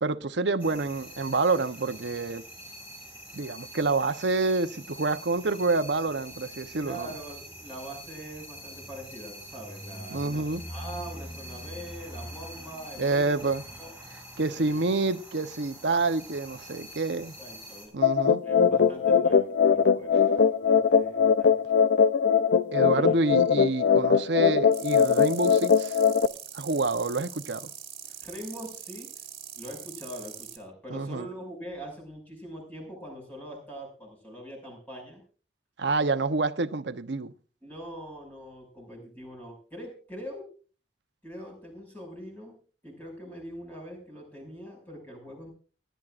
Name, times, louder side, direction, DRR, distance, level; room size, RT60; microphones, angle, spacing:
voice 1, 0.0-2.4 3.3-7.1 10.1-10.6 13.0-13.6 14.4-17.3 17.9-18.4 22.7-26.0 26.5-27.7 30.9-31.3 35.8-37.3, right 3 dB, 85° right, 0.9 m, -27 dB
sound 1, 0.6-17.9, equal, 10° right, 6.5 m, -44 dB
voice 2, 6.8-13.5 13.8-13.9 14.5-14.8 17.4-17.9 18.4-21.6 22.9-23.2 28.2-29.3 29.5-35.2 37.6-40.5 41.2-42.6 42.8-45.5, equal, 10° left, 6.2 m, -43 dB
sound 2, 18.0-26.3, left 6 dB, 85° left, 0.6 m, -21 dB
sound 3, 24.7-30.6, right 9 dB, 35° right, 2.3 m, -43 dB
29.5 x 10.5 x 2.5 m
head